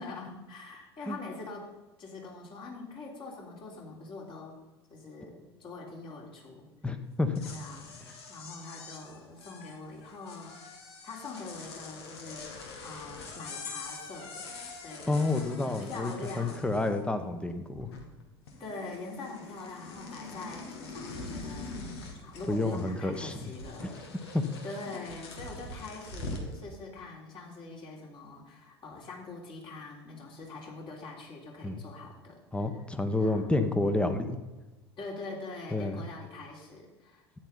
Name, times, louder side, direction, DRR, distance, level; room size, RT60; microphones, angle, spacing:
voice 1, 0.0-1.7 2.0-4.6 4.9-6.7 7.5-8.0 8.3-10.8 11.0-12.5 12.8-16.7 18.6-21.9 22.2-24.3 24.6-32.4 33.1-33.6 35.0-37.3, left 3 dB, 35° left, -2 dB, 3.7 m, -43 dB
voice 2, 6.8-7.3 15.1-17.9 22.5-23.5 23.8-23.9 24.3-24.4 31.6-31.8 32.5-34.4 35.7-36.0, left 2 dB, 5° left, 8 dB, 1.2 m, -29 dB
sound 1, 7.2-17.2 17.5-18.2 18.5-26.5, left 3 dB, 70° left, 2.0 m, -44 dB
13.0 x 9.5 x 4.0 m, 1.1 s
figure-of-eight pair, 75°, 14 cm